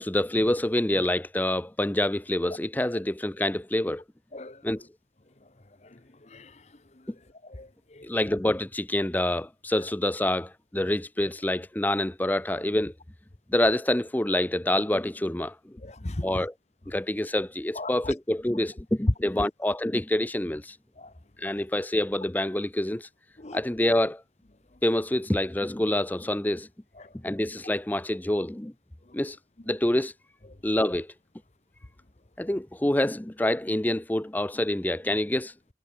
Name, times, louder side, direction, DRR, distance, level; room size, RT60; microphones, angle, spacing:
voice 1, 0.0-4.0 4.6-4.8 8.0-12.9 13.5-15.7 16.2-16.5 16.9-20.8 21.4-23.1 23.5-24.2 24.8-26.7 27.1-28.7 29.1-29.4 29.7-30.1 30.6-31.1 32.4-35.5, left 1 dB, 10° left, 0.5 m, -27 dB
voice 2, 4.3-4.6 5.8-7.1 7.4-8.3 15.8-16.3 17.7-18.1 21.0-21.1 21.4-21.6 23.4-23.6 27.0-27.4 29.1-29.2, left 2 dB, 35° left, 1.0 m, -41 dB
head